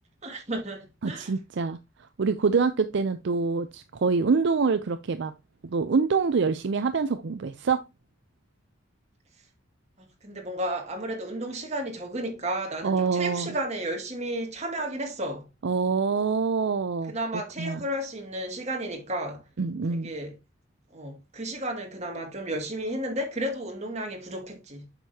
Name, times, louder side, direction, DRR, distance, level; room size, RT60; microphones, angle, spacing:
voice 1, 0.2-1.3 10.2-15.5 17.1-19.4 19.9-20.3 20.9-24.9, right 1 dB, 35° right, 2.1 m, -33 dB
voice 2, 1.0-1.8 2.2-5.3 5.7-7.8 12.8-13.5 15.6-17.1 17.6-17.8 19.6-20.1, right 4 dB, 65° right, 0.5 m, -25 dB
7.9 x 6.5 x 2.8 m
head